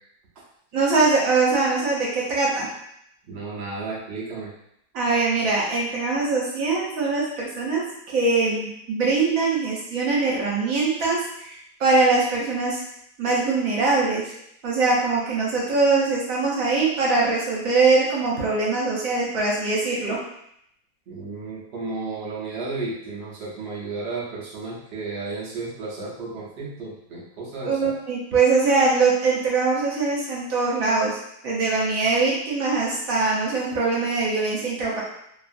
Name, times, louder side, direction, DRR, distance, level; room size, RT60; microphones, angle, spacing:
voice 1, 0.7-2.7 4.9-12.8 13.2-14.3 14.6-20.2 27.6-31.2 31.4-35.0, right 3 dB, 60° right, -4 dB, 1.0 m, -22 dB
voice 2, 3.3-4.5 21.1-27.9, right 3 dB, 85° right, -5 dB, 0.5 m, -33 dB
2.9 x 2.4 x 2.5 m, 0.75 s
omnidirectional pair, 2.0 m